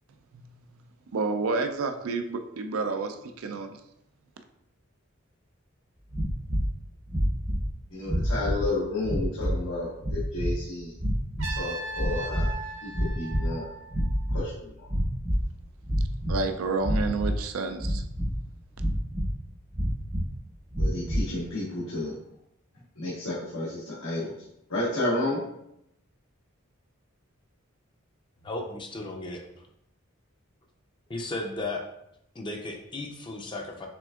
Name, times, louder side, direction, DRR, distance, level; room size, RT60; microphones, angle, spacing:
voice 1, 1.1-3.8 16.3-18.0, right 3 dB, 80° right, 7 dB, 0.4 m, -29 dB
sound 1, 6.1-6.7 7.1-7.7 8.0-8.7 9.0-9.6 10.0-10.5 11.0-11.6 11.9-12.6 12.9-13.6 13.9-14.5 14.9-15.5 15.8-16.4 16.8-17.4 17.8-18.4 18.8-19.3 19.7-20.3 20.7-21.3, equal, 20° right, 0.7 m, -27 dB
voice 2, 7.9-10.9 11.5-12.5 12.8-13.7 14.3-14.7 20.8-22.1 23.0-24.3 24.7-25.4, left 2 dB, 85° left, -8 dB, 1.2 m, -31 dB
Trumpet, 11.4-14.4, right 2 dB, 60° right, 0.9 m, -38 dB
voice 3, 28.4-29.4 31.1-31.9 32.3-33.9, left 2 dB, 20° left, 1 dB, 0.5 m, -35 dB
6.0 x 3.5 x 2.3 m, 0.80 s
head